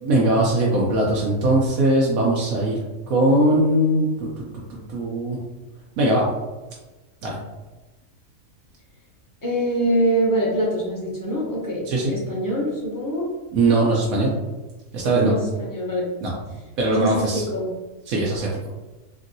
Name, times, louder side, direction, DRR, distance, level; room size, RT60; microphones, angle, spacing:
voice 1, 0.0-2.8 3.1-4.4 4.7-5.4 6.0-6.2 7.2-7.4 11.9-12.1 13.5-14.3 14.9-15.3 16.2-16.3 16.8-17.4 18.1-18.5, right 1 dB, 85° right, -4 dB, 1.0 m, -20 dB
voice 2, 9.4-13.3 15.2-16.1 16.9-17.7, right 1 dB, 25° left, -6 dB, 0.5 m, -24 dB
3.1 x 2.6 x 2.5 m, 1.2 s
omnidirectional pair, 1.4 m